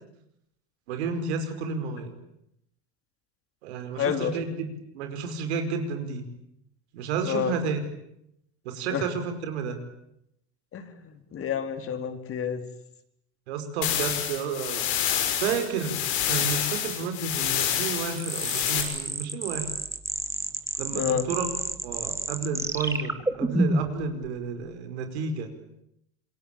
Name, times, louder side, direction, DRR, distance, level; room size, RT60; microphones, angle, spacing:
voice 1, 0.9-2.1 3.6-4.7 4.9-6.2 6.9-7.8 8.7-9.8 13.5-14.9 15.4-19.7 20.8-21.5 21.8-25.5, right 5 dB, 85° right, 7 dB, 5.2 m, -31 dB
voice 2, 4.0-4.3 7.2-7.5 8.9-9.0 10.7-10.9 11.3-12.6 20.9-21.3, left 8 dB, 45° left, 7 dB, 4.1 m, -28 dB
sound 1, 13.8-18.8, left 10 dB, 80° left, 6.5 m, -28 dB
sound 2, 18.2-24.0, right 2 dB, 10° right, 2.2 m, -30 dB
27.5 x 22.5 x 8.9 m, 0.79 s
supercardioid pair, 95°, 32 cm